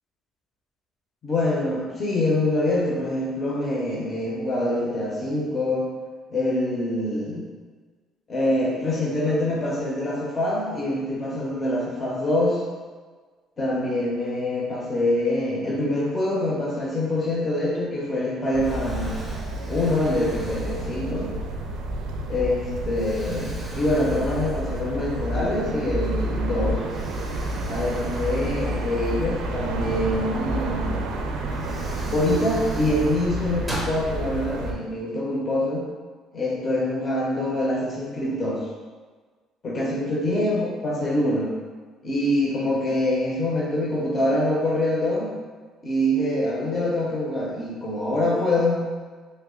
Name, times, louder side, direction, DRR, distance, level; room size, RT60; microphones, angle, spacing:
voice 1, 1.2-5.9 6.3-7.5 8.3-12.6 13.6-19.2 19.7-21.3 22.3-26.8 27.7-31.0 32.1-35.8 36.3-38.6 39.6-41.6 42.0-45.3 45.8-48.8, left 1 dB, 25° left, -4 dB, 0.6 m, -25 dB
Explosion, 17.9-18.3 18.6-21.4 22.0-22.2 22.9-25.2 25.5-25.6 26.9-29.5 30.9-31.0 31.5-34.0, right 1 dB, 5° right, 0.7 m, -41 dB
sound 1, 18.5-34.7, right 1 dB, 75° right, 0.4 m, -30 dB
3.1 x 2.3 x 3.6 m, 1.4 s
cardioid pair, 140°, 0 cm